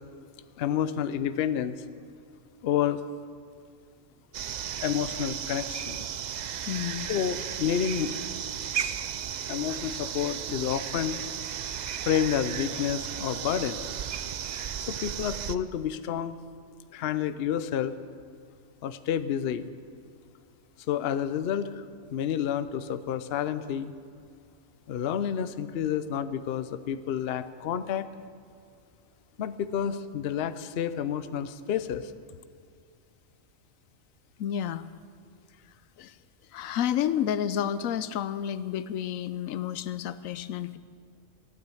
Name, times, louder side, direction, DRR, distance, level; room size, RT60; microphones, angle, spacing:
voice 1, 0.6-1.8 2.6-3.0 4.8-6.1 7.1-8.1 9.5-11.2 12.0-13.9 14.9-16.4 16.9-18.0 18.8-19.7 20.9-21.9 22.1-23.9 24.9-28.1 29.4-32.1, left 9 dB, 60° left, 12 dB, 0.8 m, -29 dB
sound 1, 4.3-15.6, right 8 dB, 75° right, 0.4 m, -34 dB
voice 2, 6.7-7.1 34.4-34.9 36.0-36.1 36.5-40.8, left 9 dB, 85° left, 15 dB, 1.0 m, -30 dB
14.5 x 9.6 x 8.4 m, 2.3 s
omnidirectional pair, 1.4 m